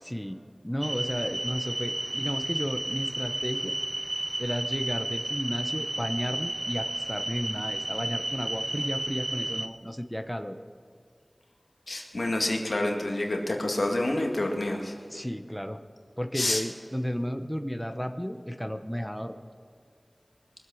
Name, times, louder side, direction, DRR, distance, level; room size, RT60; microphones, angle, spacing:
voice 1, 0.0-0.4 0.6-3.7 4.4-10.6 15.1-15.8 16.2-19.5, equal, 5° left, 7 dB, 0.9 m, -33 dB
sound 1, 0.8-9.7, right 1 dB, 45° right, 0.8 m, -32 dB
voice 2, 11.9-15.0 16.3-16.6, left 1 dB, 90° left, 1 dB, 2.0 m, -28 dB
22.0 x 8.0 x 6.4 m, 2.2 s
wide cardioid pair, 55°, 0 cm